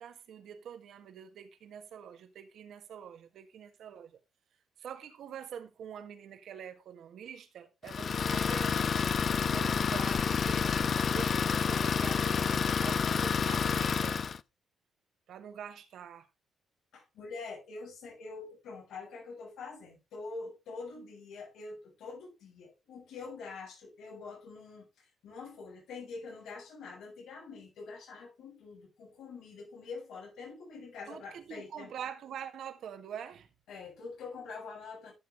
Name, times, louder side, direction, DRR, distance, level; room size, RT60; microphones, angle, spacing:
voice 1, 0.0-4.2 4.8-8.9 9.4-14.2 15.3-16.3 31.1-33.5, right 8 dB, 75° right, 1.6 m, -45 dB
Idling, 7.9-14.4, left 6 dB, 50° left, 0.4 m, -29 dB
voice 2, 16.9-24.9 25.2-31.9 33.7-35.1, left 4 dB, 85° left, 7.9 m, -45 dB
13.5 x 6.9 x 3.6 m
cardioid pair, 85°, 0 cm